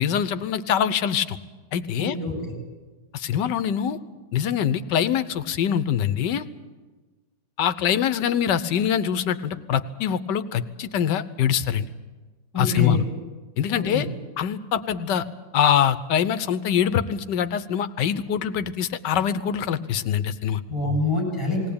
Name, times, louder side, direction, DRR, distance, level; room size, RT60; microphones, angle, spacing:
voice 1, 0.0-1.4 1.7-2.2 3.1-4.0 4.3-6.5 7.6-11.9 12.6-13.0 13.6-14.1 14.4-15.2 15.5-20.6, left 9 dB, 85° left, 13 dB, 1.5 m, -24 dB
voice 2, 2.0-2.5 12.5-13.0 13.7-14.1 20.7-21.6, left 3 dB, 10° left, 0 dB, 7.9 m, -25 dB
19.5 x 18.0 x 8.7 m, 1.3 s
omnidirectional pair, 1.8 m